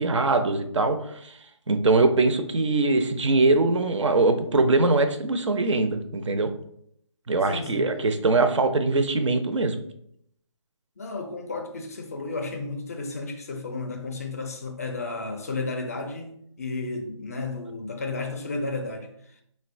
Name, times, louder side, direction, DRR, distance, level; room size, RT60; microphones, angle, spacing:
voice 1, 0.0-1.3 1.7-6.5 7.3-9.8, right 3 dB, 70° right, 0.5 m, -22 dB
voice 2, 7.4-7.9 11.0-19.4, left 3 dB, 30° left, 0.4 m, -33 dB
3.8 x 2.1 x 2.5 m
figure-of-eight pair, 150°, 16 cm